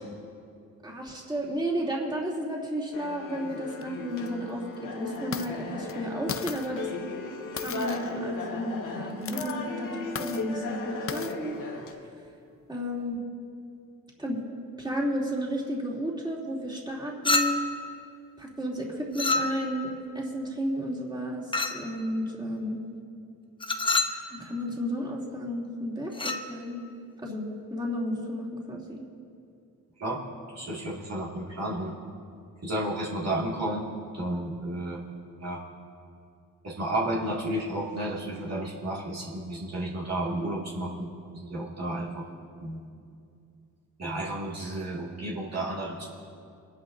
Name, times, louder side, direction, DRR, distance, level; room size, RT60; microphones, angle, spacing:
voice 1, 0.8-6.9 7.5-11.6 12.7-13.2 14.2-14.4 14.8-17.6 18.4-22.8 24.3-26.8 27.2-29.0, equal, 15° right, -4 dB, 3.0 m, -32 dB
sound 1, 2.9-11.9, left 3 dB, 75° left, 1.6 m, -37 dB
sound 2, 3.7-3.8 4.3-4.4 5.1-5.5 5.9-6.0 6.3-6.7 7.6-8.2 9.1-9.5 10.2-10.4 11.1-11.3, left 7 dB, 40° left, 0.6 m, -36 dB
Chink clink, 17.2-17.8 19.1-19.8 21.5-21.9 23.6-24.2 26.1-26.5, left 3 dB, 15° left, 0.9 m, -27 dB
voice 2, 30.5-31.9 32.6-33.8 34.1-35.0 35.4-35.6 36.6-42.3 42.6-42.8 44.0-46.1, right 1 dB, 50° right, -6 dB, 2.2 m, -32 dB
24.0 x 11.0 x 2.7 m, 2.5 s
cardioid pair, 75°, 33 cm